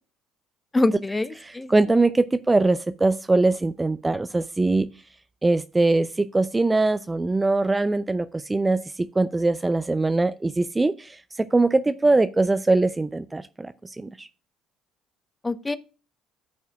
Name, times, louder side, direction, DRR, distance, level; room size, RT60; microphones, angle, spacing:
voice 1, 0.7-1.8 15.4-15.8, left 2 dB, 20° left, 0.9 m, -24 dB
voice 2, 1.4-4.9 5.4-14.3, right 2 dB, 20° right, 0.5 m, -22 dB
13.5 x 5.5 x 2.3 m
hypercardioid pair, 60°, 0 cm